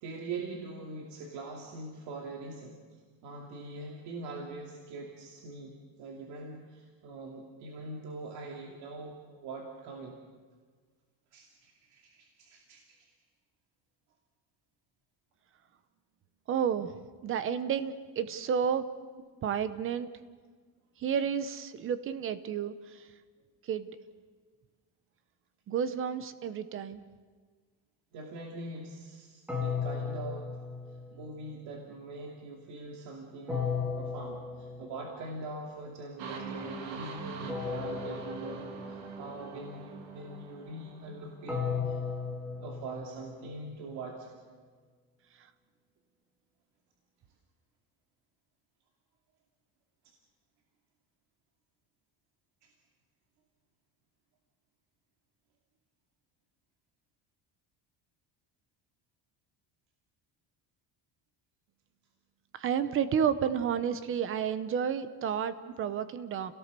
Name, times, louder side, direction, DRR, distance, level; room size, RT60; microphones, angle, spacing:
voice 1, 0.0-2.8 3.2-10.2 11.3-12.8 28.1-30.5 31.1-42.0 42.6-44.3 52.6-52.7, right 2 dB, 65° right, 0 dB, 2.7 m, -43 dB
voice 2, 16.5-16.9 17.2-18.9 19.4-20.1 21.0-23.1 23.6-24.0 25.7-27.0 62.5-66.6, right 8 dB, 30° right, 13 dB, 0.9 m, -31 dB
sound 1, 29.5-31.5 33.5-35.3 37.5-39.3 41.5-43.7, left 5 dB, 5° right, 2.0 m, -36 dB
sound 2, 36.2-41.9, right 4 dB, 90° right, 2.9 m, -43 dB
29.0 x 18.0 x 6.8 m, 1.5 s
cardioid pair, 180°, 42 cm